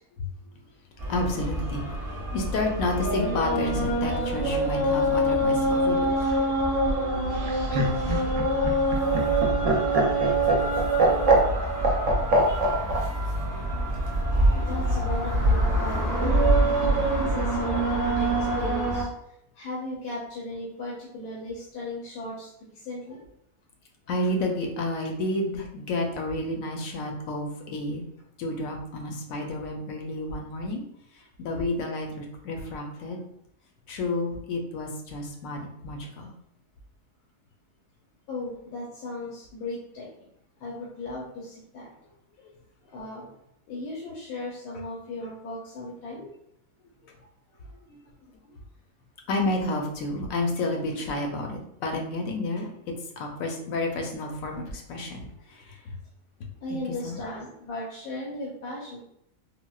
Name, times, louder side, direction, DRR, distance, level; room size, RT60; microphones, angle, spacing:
sound 1, 1.0-19.0, right 1 dB, 25° right, 0.8 m, -25 dB
voice 1, 1.1-6.8 8.1-8.7 12.0-12.1 12.5-12.7 24.1-28.0 28.4-30.8 31.1-33.2 33.9-36.3 42.4-42.5 47.0-47.1 47.9-48.0 49.3-52.7 53.2-55.9 56.7-57.2, left 2 dB, 70° left, 1 dB, 0.9 m, -31 dB
Laughter, 7.3-13.0 14.3-15.0, right 1 dB, 65° right, 0.9 m, -23 dB
voice 2, 14.5-16.4 16.7-19.1 19.5-23.2 38.3-40.1 40.6-41.9 42.9-43.3 43.7-46.3 56.6-59.0, left 1 dB, 85° left, -5 dB, 1.2 m, -37 dB
4.0 x 2.1 x 2.3 m, 0.74 s
omnidirectional pair, 1.6 m